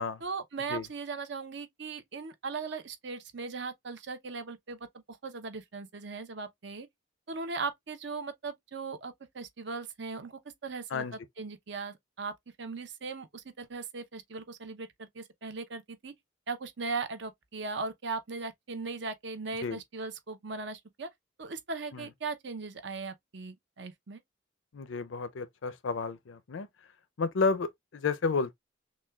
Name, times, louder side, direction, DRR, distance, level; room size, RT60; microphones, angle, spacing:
voice 1, 0.2-6.9 7.3-12.3 12.6-16.1 16.5-21.1 21.4-24.2, right 4 dB, 65° right, 0.7 m, -38 dB
voice 2, 24.7-26.7 27.2-28.5, left 4 dB, 80° left, 0.5 m, -31 dB
6.0 x 2.3 x 2.3 m
head